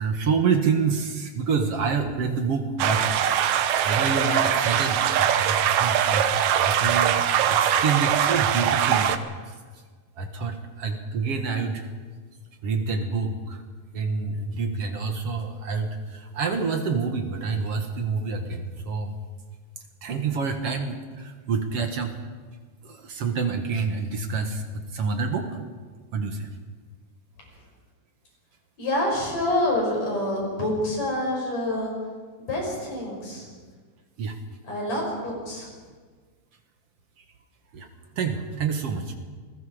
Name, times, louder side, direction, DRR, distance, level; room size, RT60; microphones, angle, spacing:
voice 1, 0.0-3.1 3.8-6.3 6.6-9.6 10.2-11.9 12.6-13.6 13.9-19.2 20.0-22.1 22.8-25.6 26.1-26.5 34.2-34.4 37.7-37.9 38.2-39.2, right 5 dB, 55° right, 5 dB, 2.3 m, -27 dB
sound 1, 2.8-9.2, right 9 dB, 75° right, 2.3 m, -22 dB
voice 2, 28.8-31.9 32.4-33.5 34.7-35.7, left 1 dB, 65° left, -1 dB, 6.8 m, -27 dB
28.0 x 21.0 x 5.0 m, 1.5 s
omnidirectional pair, 3.3 m